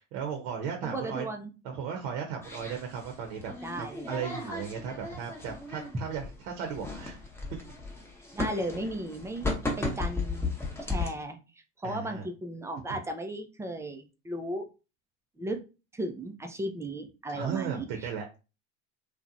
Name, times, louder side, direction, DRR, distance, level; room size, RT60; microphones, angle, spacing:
voice 1, 0.1-1.3 1.6-7.2 11.8-12.3 17.3-18.2, right 7 dB, 60° right, 3 dB, 0.7 m, -36 dB
voice 2, 0.8-1.5 3.6-4.6 8.3-9.5 9.8-10.5 10.8-11.4 11.8-14.6 15.4-15.6 15.9-18.1, right 1 dB, 10° right, 5 dB, 0.3 m, -35 dB
sound 1, 2.4-11.1, left 3 dB, 5° left, 0.7 m, -36 dB
2.7 x 2.1 x 2.5 m, 0.31 s
hypercardioid pair, 85°, 36 cm